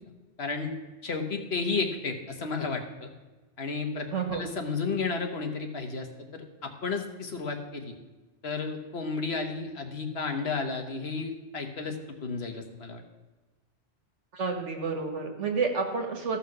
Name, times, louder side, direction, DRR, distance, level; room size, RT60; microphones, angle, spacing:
voice 1, 0.4-0.7 1.0-3.1 3.6-7.9 8.4-13.0, left 4 dB, 65° left, 4 dB, 1.4 m, -32 dB
voice 2, 4.1-4.4 14.3-16.4, right 4 dB, 90° right, 4 dB, 1.8 m, -30 dB
14.0 x 5.7 x 5.9 m, 1.2 s
omnidirectional pair, 1.2 m